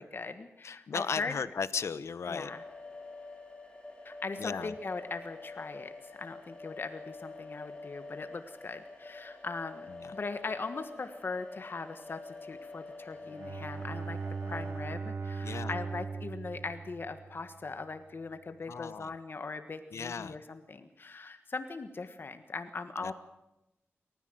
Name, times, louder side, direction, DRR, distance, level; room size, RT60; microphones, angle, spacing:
voice 1, 0.0-1.4 2.3-2.6 4.0-14.2 14.5-23.1, left 4 dB, 50° left, 9 dB, 1.4 m, -40 dB
voice 2, 0.6-2.5 4.4-4.7 10.0-10.1 15.4-15.8 18.7-19.1 19.9-20.4 23.0-23.1, left 6 dB, 90° left, 15 dB, 1.0 m, -36 dB
sound 1, 2.3-14.7, left 3 dB, 20° left, 6.1 m, -47 dB
Bowed string instrument, 13.2-17.8, right 4 dB, 60° right, 1.1 m, -39 dB
28.5 x 14.5 x 7.9 m, 0.92 s
wide cardioid pair, 120°, 5 cm